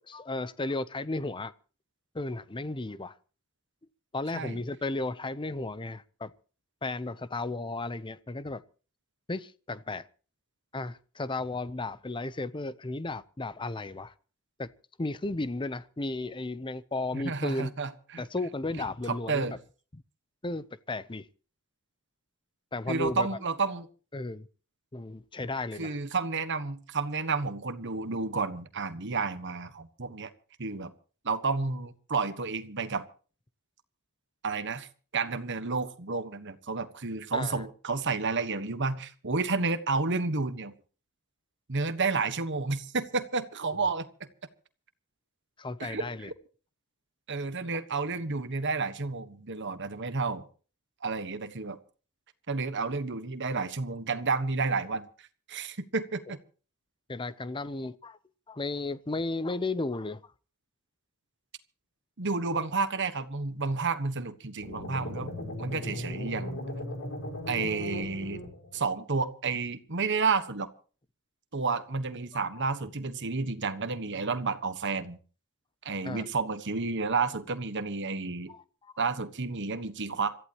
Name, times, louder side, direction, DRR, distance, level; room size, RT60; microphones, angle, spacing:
voice 1, 0.0-1.5 2.1-3.2 4.1-6.3 6.8-8.6 9.3-10.0 10.7-14.1 14.6-14.7 15.0-17.7 18.2-19.6 19.9-20.0 20.4-21.3 22.7-23.3 24.1-24.5 24.9-26.0 37.3-37.7 45.6-46.3 57.1-58.2 58.5-60.3 67.6-67.7 72.3-72.6 74.2-74.3 76.0-76.3 78.5-78.9, left 2 dB, 20° left, 0.7 m, -34 dB
voice 2, 17.1-18.2 19.1-19.5 22.9-23.9 25.8-30.3 30.6-30.9 31.2-33.0 34.4-34.9 35.1-40.7 41.7-44.1 45.8-46.0 47.3-50.5 51.0-51.8 52.5-55.1 55.5-56.4 62.2-65.3 65.6-66.6 67.5-68.4 68.7-70.7 71.5-75.2 75.8-78.5 79.0-80.4, right 4 dB, 55° right, 1.4 m, -31 dB
sound 1, 64.6-68.9, left 1 dB, 60° left, 5.0 m, -37 dB
26.0 x 14.5 x 3.0 m
head